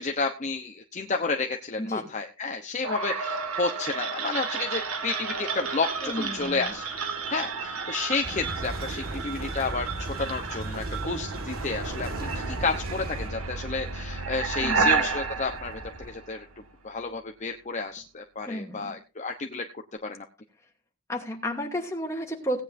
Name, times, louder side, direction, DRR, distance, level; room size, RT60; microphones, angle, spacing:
voice 1, 0.0-6.9 7.3-19.7 20.0-20.2, left 4 dB, 35° left, 4 dB, 0.9 m, -31 dB
voice 2, 1.8-2.1 6.0-6.7 14.6-15.1 18.5-19.0 21.1-22.6, equal, 15° left, 0 dB, 2.5 m, -32 dB
sound 1, 2.8-16.7, right 4 dB, 85° right, 2.0 m, -32 dB
sound 2, 8.2-13.3, right 1 dB, 45° right, 1.7 m, -37 dB
sound 3, 10.7-16.1, equal, 60° right, 3.5 m, -46 dB
18.0 x 9.5 x 2.7 m, 0.30 s
head